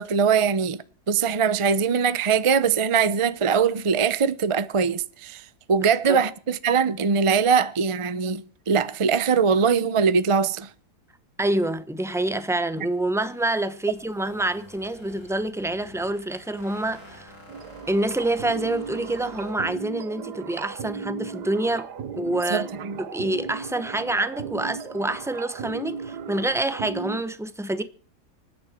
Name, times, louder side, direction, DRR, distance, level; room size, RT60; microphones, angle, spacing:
voice 1, 0.0-10.7 22.5-23.0, right 6 dB, 45° right, 0.4 m, -22 dB
voice 2, 11.4-17.3 17.9-21.9 22.2-22.7 23.0-27.8, right 1 dB, ahead, 0.7 m, -27 dB
sound 1, 12.6-19.5, equal, 60° left, 6.9 m, -48 dB
sound 2, 17.5-27.2, right 6 dB, 80° right, 1.6 m, -36 dB
25.0 x 9.9 x 4.4 m
omnidirectional pair, 1.7 m